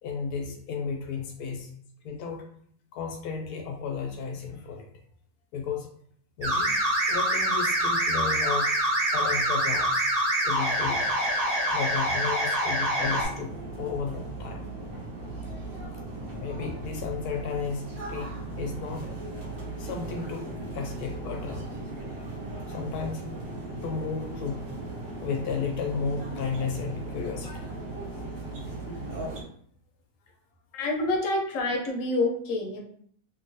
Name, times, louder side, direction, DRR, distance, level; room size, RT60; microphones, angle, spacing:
voice 1, 0.0-1.7 2.0-2.5 2.9-4.9 5.5-5.9 6.4-6.7 7.1-8.7 9.1-10.1 10.4-11.1 11.7-14.7 16.2-18.3 18.6-19.1 19.8-21.8 22.7-23.3 23.8-24.6 25.2-27.8, left 5 dB, 85° left, 3 dB, 1.1 m, -33 dB
sound 1, 6.4-13.3, right 1 dB, 40° right, 0.6 m, -25 dB
sound 2, 13.0-29.4, right 2 dB, 60° right, 1.0 m, -37 dB
voice 2, 30.7-32.9, left 2 dB, 65° left, 2 dB, 0.9 m, -27 dB
2.9 x 2.6 x 2.6 m, 0.62 s
omnidirectional pair, 1.6 m